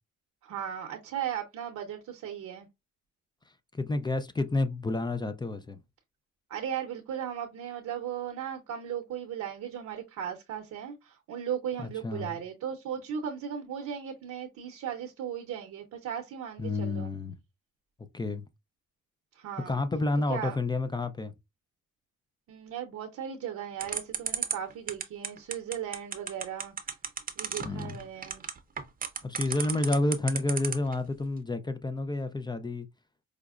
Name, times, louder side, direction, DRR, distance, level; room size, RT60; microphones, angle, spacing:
voice 1, 0.4-2.7 6.5-17.1 19.3-19.8 20.3-20.6 22.5-26.7 27.4-28.4, right 9 dB, 65° right, 0.7 m, -37 dB
voice 2, 3.7-5.8 12.0-12.4 16.6-17.4 18.1-18.4 19.7-21.3 27.6-28.0 29.2-32.9, left 2 dB, 15° left, 0.3 m, -30 dB
sound 1, 23.8-30.9, right 6 dB, 30° right, 0.6 m, -32 dB
4.9 x 2.0 x 2.3 m
cardioid pair, 90°, 30 cm